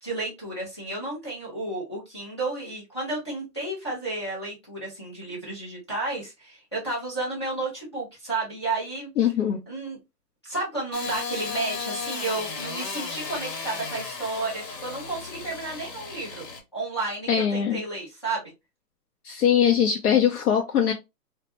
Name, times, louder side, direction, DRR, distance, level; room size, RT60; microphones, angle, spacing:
voice 1, 0.0-9.1 9.7-10.0 10.4-16.4 16.7-18.5, right 2 dB, 20° left, 0.4 m, -32 dB
voice 2, 9.2-9.6 17.3-17.8 19.2-20.9, left 8 dB, 65° left, 0.7 m, -21 dB
Engine starting / Sawing, 10.9-16.6, left 4 dB, 85° left, 1.1 m, -35 dB
2.2 x 2.1 x 2.7 m
hypercardioid pair, 150°, 49 cm